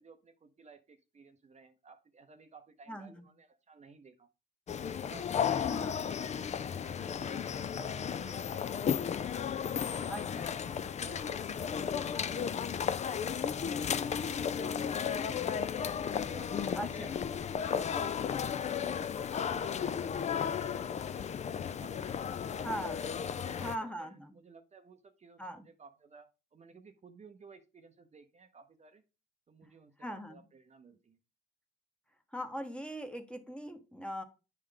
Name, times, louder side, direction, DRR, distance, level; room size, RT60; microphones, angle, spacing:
voice 1, 0.0-4.3 4.7-9.0 9.6-15.5 16.2-22.8 23.4-29.0 29.5-31.2, right 4 dB, 35° right, 7 dB, 0.7 m, -57 dB
voice 2, 2.9-3.2 5.6-6.0 10.1-10.5 16.8-17.1 22.6-23.0 23.6-24.4 25.4-25.6 30.0-30.4 32.3-34.2, equal, 5° left, 7 dB, 0.9 m, -40 dB
sound 1, 4.7-23.8, left 7 dB, 35° left, 0.4 m, -34 dB
9.8 x 3.3 x 3.7 m, 0.31 s
cardioid pair, 90°, 20 cm